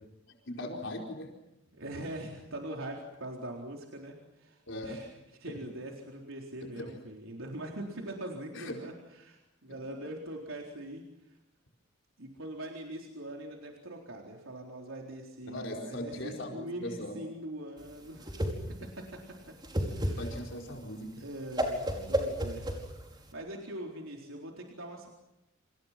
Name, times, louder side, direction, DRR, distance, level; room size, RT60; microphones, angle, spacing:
voice 1, 0.4-1.3 4.7-5.0 8.5-8.7 15.4-17.2 20.2-21.1 21.9-22.0, left 1 dB, 65° left, 1 dB, 4.8 m, -39 dB
voice 2, 1.7-5.1 5.4-11.4 12.2-19.5 19.9-20.3 21.2-22.7 23.1-25.1, right 1 dB, 85° right, 0 dB, 4.0 m, -42 dB
Whoosh swoosh swish, 17.8-23.3, equal, 20° right, 5.1 m, -33 dB
29.0 x 28.5 x 6.0 m, 0.90 s
head